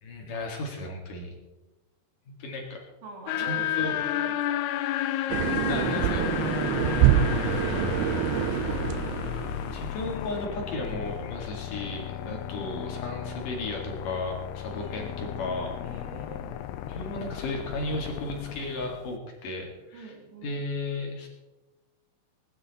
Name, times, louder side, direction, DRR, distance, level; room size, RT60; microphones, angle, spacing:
voice 1, 0.0-1.3 2.4-2.8 3.4-3.9 5.5-6.3 9.7-15.7 16.9-20.1 20.4-21.3, left 2 dB, 50° left, 0 dB, 3.2 m, -34 dB
voice 2, 3.0-4.6 6.9-9.2 12.2-12.8 14.7-15.2 15.8-16.7 19.9-20.6, right 4 dB, 65° right, 1 dB, 4.4 m, -45 dB
sound 1, 3.3-19.1, left 12 dB, 85° left, 2.3 m, -32 dB
sound 2, 5.3-9.9, right 14 dB, 85° right, 2.4 m, -26 dB
20.0 x 11.0 x 4.2 m, 1.1 s
omnidirectional pair, 5.5 m